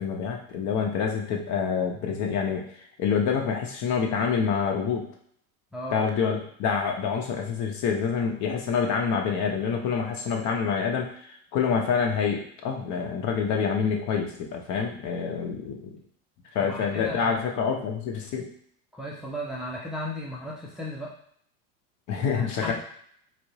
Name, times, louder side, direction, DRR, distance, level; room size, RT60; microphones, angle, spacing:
voice 1, 0.0-2.6 3.0-5.1 5.9-16.0 16.5-18.5 22.1-22.7, left 6 dB, 45° left, 2 dB, 0.8 m, -27 dB
voice 2, 5.7-6.0 16.6-17.4 18.9-21.1 22.2-22.7, left 1 dB, ahead, -4 dB, 0.5 m, -36 dB
4.2 x 2.0 x 2.7 m, 0.64 s
hypercardioid pair, 90°, 42 cm